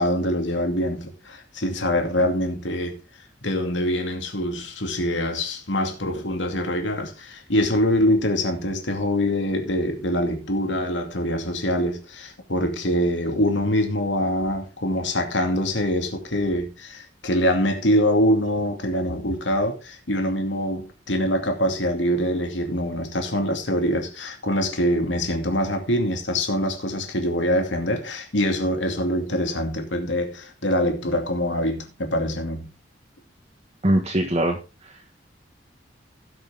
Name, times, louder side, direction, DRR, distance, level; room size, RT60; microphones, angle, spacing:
voice 1, 0.0-3.0 3.4-32.7, equal, 85° left, 2.6 m, -24 dB
voice 2, 33.8-35.0, right 1 dB, 35° right, 1.5 m, -23 dB
17.5 x 6.4 x 3.6 m
head